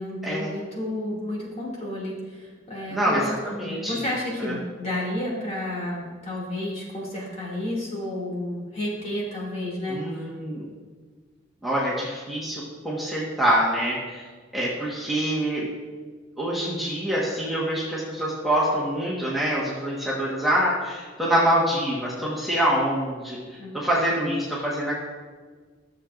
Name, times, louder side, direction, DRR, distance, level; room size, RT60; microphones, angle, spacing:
voice 1, 0.0-3.3 3.7-10.0 23.6-23.8, left 1 dB, 35° left, -5 dB, 2.4 m, -31 dB
voice 2, 2.9-4.0 4.4-4.5 9.9-10.6 11.6-14.2 14.5-15.7 16.4-23.4 23.7-24.9, equal, ahead, -8 dB, 1.4 m, -25 dB
13.5 x 7.1 x 2.5 m, 1.5 s
head